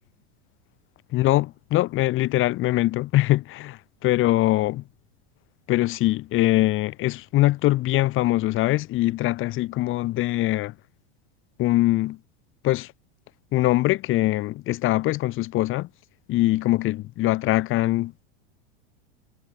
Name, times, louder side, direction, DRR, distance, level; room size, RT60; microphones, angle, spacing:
voice 1, 1.1-4.8 5.7-10.7 11.6-12.2 12.6-12.9 13.5-15.9 16.3-18.2, left 17 dB, 40° left, 4.9 m, -22 dB
supercardioid pair, 135°, 31 cm